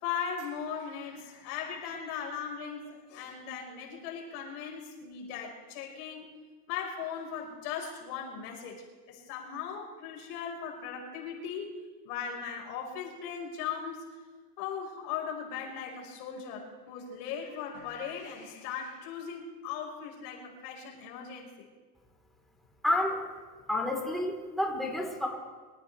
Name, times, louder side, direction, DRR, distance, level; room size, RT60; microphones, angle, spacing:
voice 1, 0.0-6.3 6.7-11.7 12.0-14.0 14.6-21.7, left 7 dB, 85° left, 0 dB, 4.9 m, -38 dB
voice 2, 22.8-23.2 23.7-25.3, left 1 dB, ahead, -2 dB, 3.7 m, -29 dB
25.0 x 14.5 x 3.4 m, 1.4 s
supercardioid pair, 130°, 44 cm